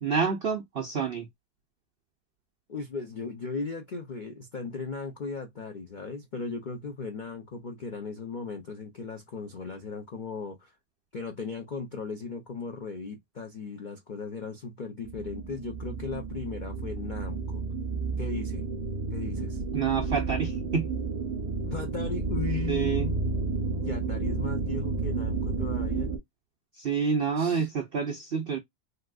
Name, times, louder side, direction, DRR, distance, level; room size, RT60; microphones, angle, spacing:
voice 1, 0.0-1.3 19.7-20.9 22.7-23.1 26.8-28.6, right 6 dB, 85° right, 0.5 m, -28 dB
voice 2, 2.7-10.7 11.1-17.6 18.2-18.7 19.1-19.6 21.7-23.3 23.7-26.2 27.4-27.7, left 4 dB, 75° left, 0.4 m, -37 dB
sound 1, 15.0-26.2, right 4 dB, 35° right, 0.6 m, -31 dB
3.3 x 2.9 x 2.3 m
omnidirectional pair, 1.8 m